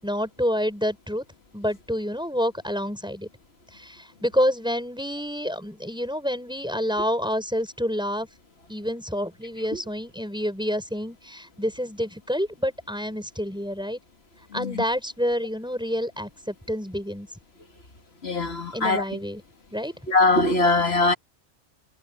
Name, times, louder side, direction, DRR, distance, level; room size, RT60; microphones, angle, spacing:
voice 1, 0.0-1.2 1.5-3.3 3.7-8.3 8.7-14.0 14.5-17.3 18.7-19.4 19.7-19.9, equal, 5° right, 5.5 m, -28 dB
voice 2, 14.5-14.8 18.2-19.0 20.1-21.1, left 2 dB, 75° left, 2.3 m, -21 dB
omnidirectional pair, 1.1 m